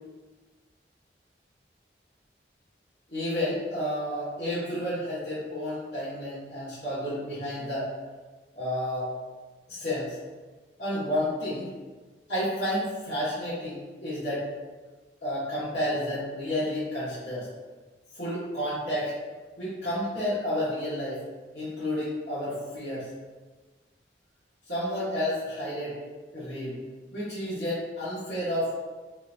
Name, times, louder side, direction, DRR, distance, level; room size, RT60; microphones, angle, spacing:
voice 1, 3.1-7.9 8.5-9.1 9.7-10.2 10.8-11.7 12.3-14.4 15.2-17.4 18.1-19.1 19.6-21.2 21.5-23.1 24.7-26.0 26.3-26.7 27.1-28.7, equal, 85° left, -12 dB, 1.5 m, -31 dB
4.3 x 2.6 x 2.5 m, 1.3 s
head